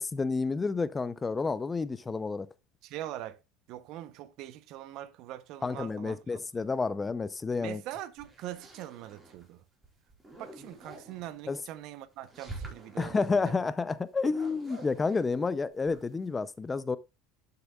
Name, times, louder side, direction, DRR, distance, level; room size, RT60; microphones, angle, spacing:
voice 1, 0.0-2.5 5.6-7.8 11.5-11.6 13.0-17.0, left 4 dB, 20° left, 0.6 m, -30 dB
voice 2, 2.8-3.4 3.7-6.4 7.6-9.6 10.4-13.5, right 13 dB, 60° right, 0.8 m, -42 dB
sound 1, 7.9-9.5 9.8-11.3 12.1-13.1 14.2-16.3, right 2 dB, 15° right, 4.9 m, -47 dB
11.5 x 6.8 x 2.4 m
supercardioid pair, 100°, 0 cm